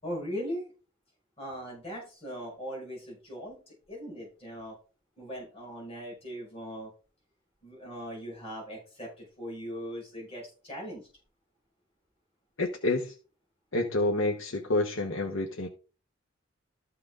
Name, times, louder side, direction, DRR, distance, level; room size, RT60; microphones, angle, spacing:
voice 1, 0.0-0.7 1.4-4.8 5.2-6.9 7.6-11.1, equal, 30° left, 5.4 m, -39 dB
voice 2, 12.6-13.1 13.7-15.7, left 2 dB, 75° left, 1.1 m, -28 dB
13.5 x 5.7 x 3.7 m
head